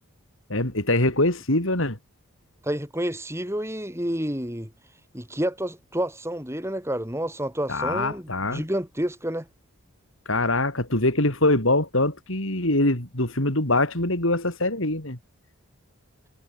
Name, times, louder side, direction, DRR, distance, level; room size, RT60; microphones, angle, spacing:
voice 1, 0.5-2.0 7.7-8.6 10.3-15.2, left 2 dB, 65° left, 4.5 m, -23 dB
voice 2, 2.6-4.7 5.1-9.5, right 1 dB, 10° right, 7.0 m, -29 dB
head